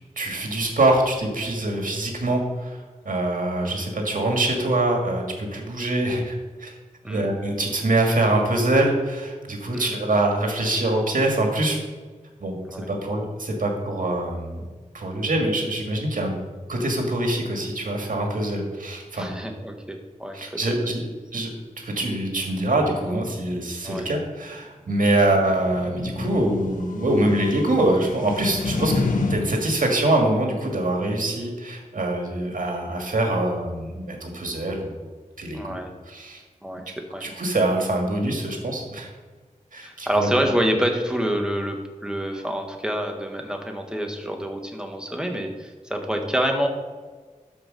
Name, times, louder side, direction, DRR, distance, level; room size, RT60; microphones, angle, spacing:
voice 1, 0.2-2.8 3.1-6.7 7.1-11.8 12.4-12.6 12.9-14.6 14.9-16.3 16.7-19.3 20.3-21.0 21.3-21.5 21.8-29.0 29.3-35.1 35.4-35.8 36.1-36.4 37.2-39.1 39.7-40.5, right 1 dB, 90° right, 1 dB, 1.8 m, -24 dB
voice 2, 19.1-20.4 20.7-20.8 23.8-24.1 35.5-35.9 36.6-37.3 39.8-46.7, equal, 5° right, 3 dB, 1.4 m, -27 dB
sound 1, 25.4-29.4, left 3 dB, 80° left, 1.1 m, -29 dB
12.5 x 4.8 x 5.3 m, 1.4 s
wide cardioid pair, 70°, 14 cm